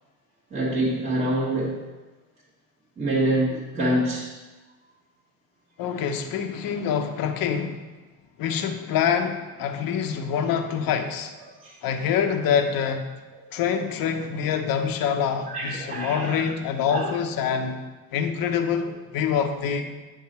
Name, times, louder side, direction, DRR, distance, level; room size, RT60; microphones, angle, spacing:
voice 1, 0.5-1.8 3.0-4.3 11.6-11.8 13.3-13.5 15.5-16.4 16.8-17.1, right 1 dB, 15° right, -7 dB, 1.5 m, -26 dB
voice 2, 5.8-7.8 8.4-11.3 11.8-13.1 13.5-17.8 18.1-19.9, left 7 dB, 45° left, 6 dB, 0.9 m, -25 dB
9.2 x 6.0 x 4.3 m, 1.2 s
cardioid pair, 140°, 49 cm